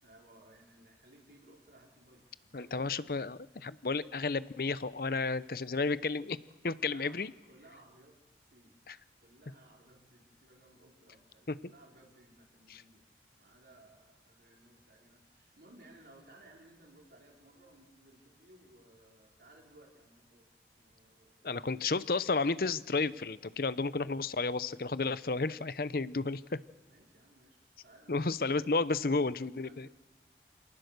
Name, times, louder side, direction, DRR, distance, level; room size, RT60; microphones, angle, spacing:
voice 1, 0.0-3.2 6.7-8.9 9.2-13.0 13.4-20.5 20.8-21.7 26.8-28.6 29.0-29.2 29.6-29.9, right 1 dB, 65° right, -1 dB, 4.6 m, -60 dB
voice 2, 2.5-6.4 6.6-7.3 8.9-9.0 11.5-11.6 12.7-12.8 21.4-26.6 28.1-29.9, left 3 dB, 55° left, 16 dB, 0.7 m, -32 dB
27.5 x 18.5 x 6.7 m, 1.1 s
head